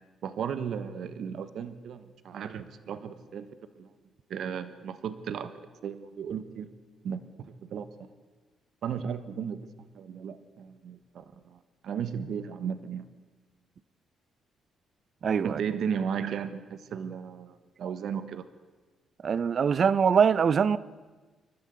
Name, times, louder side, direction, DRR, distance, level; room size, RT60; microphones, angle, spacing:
voice 1, 0.2-3.5 3.8-3.9 4.3-5.5 5.8-6.7 7.0-8.1 8.8-13.1 15.4-18.4, right 7 dB, 70° right, 1.3 m, -35 dB
voice 2, 15.2-15.6 19.2-20.8, right 6 dB, 50° right, 0.7 m, -23 dB
28.5 x 12.5 x 8.2 m
cardioid pair, 90°, 0 cm